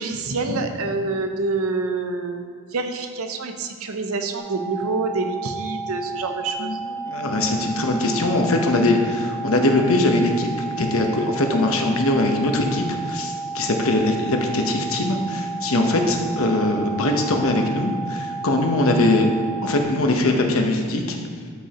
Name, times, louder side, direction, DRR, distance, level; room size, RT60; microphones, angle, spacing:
voice 1, 0.0-2.5 2.7-6.8, right 3 dB, 75° right, 6 dB, 0.7 m, -27 dB
sound 1, 4.4-19.8, right 4 dB, 10° left, 1.3 m, -32 dB
voice 2, 6.6-19.3 19.6-21.2, left 2 dB, 70° left, 3 dB, 1.0 m, -21 dB
12.5 x 5.3 x 3.0 m, 2.1 s
head